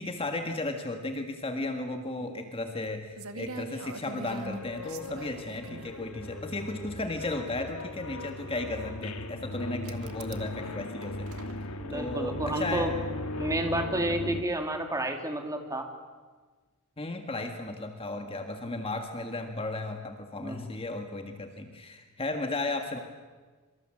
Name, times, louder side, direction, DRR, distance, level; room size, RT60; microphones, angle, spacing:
voice 1, 0.0-11.3 11.9-12.9 17.0-23.0, left 2 dB, 25° left, 5 dB, 1.8 m, -35 dB
sound 1, 2.8-2.9 3.2-5.9 7.0-7.1 9.8-10.5 10.8-11.7, right 3 dB, 70° right, 2.0 m, -42 dB
sound 2, 4.3-14.4, left 1 dB, 70° left, 2.0 m, -38 dB
voice 2, 11.8-12.9 13.4-15.9 20.4-20.6, right 1 dB, 15° right, 4 dB, 3.0 m, -30 dB
26.5 x 25.0 x 7.7 m, 1.4 s
head